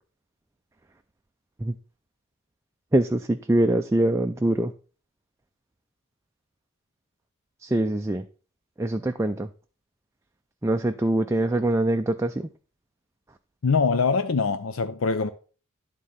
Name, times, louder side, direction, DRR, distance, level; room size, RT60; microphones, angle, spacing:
voice 1, 2.9-4.7 7.6-8.2 8.8-9.5 10.6-12.5, right 1 dB, 15° right, 0.4 m, -23 dB
voice 2, 13.6-15.3, left 4 dB, 70° left, 0.6 m, -23 dB
11.0 x 3.7 x 5.5 m
head